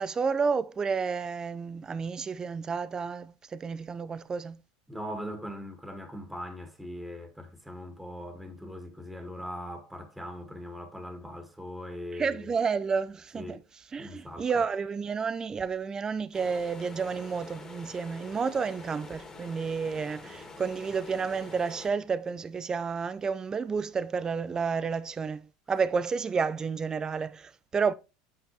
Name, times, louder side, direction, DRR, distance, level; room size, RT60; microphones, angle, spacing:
voice 1, 0.0-4.6 12.1-13.6 13.9-27.9, right 5 dB, 25° right, 0.5 m, -31 dB
voice 2, 4.9-12.5 13.3-13.6 14.0-14.6, equal, 5° right, 1.9 m, -40 dB
sound 1, 16.3-21.9, left 3 dB, 20° left, 2.2 m, -46 dB
8.6 x 5.6 x 3.2 m
hypercardioid pair, 100°, 3 cm